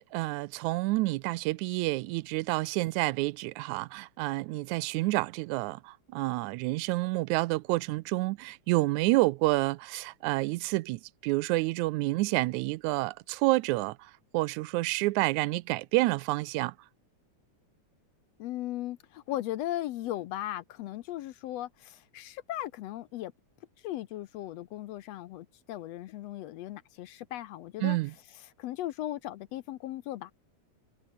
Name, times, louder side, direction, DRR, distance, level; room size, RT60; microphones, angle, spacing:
voice 1, 0.0-16.7 27.8-28.1, right 21 dB, 85° right, 1.9 m, -29 dB
voice 2, 18.4-23.3 23.8-28.0 28.3-30.3, left 14 dB, 75° left, 1.7 m, -37 dB
omnidirectional pair, 3.4 m